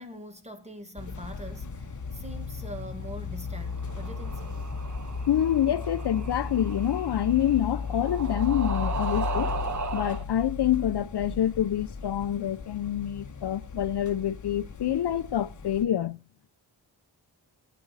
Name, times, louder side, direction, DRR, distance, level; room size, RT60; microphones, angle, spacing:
voice 1, 0.0-4.6, equal, 15° right, 1.8 m, -43 dB
sound 1, 1.0-15.8, left 5 dB, 45° left, 1.2 m, -36 dB
sound 2, 3.5-10.2, right 5 dB, 45° right, 1.1 m, -36 dB
voice 2, 5.3-9.5 9.9-16.2, left 11 dB, 70° left, 0.6 m, -27 dB
13.5 x 9.2 x 4.0 m
wide cardioid pair, 130°, 41 cm